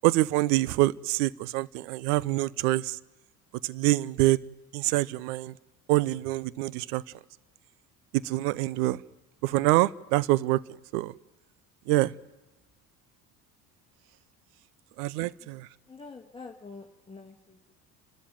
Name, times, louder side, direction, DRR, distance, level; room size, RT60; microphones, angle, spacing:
voice 1, 0.0-3.0 3.6-4.4 4.7-5.5 5.9-7.0 8.1-9.0 9.4-10.6 10.9-11.1 11.9-12.1 15.0-15.7, right 18 dB, 65° right, 0.8 m, -25 dB
voice 2, 15.9-17.6, left 4 dB, 10° left, 1.8 m, -46 dB
29.5 x 13.0 x 9.1 m
hypercardioid pair, 65°, 48 cm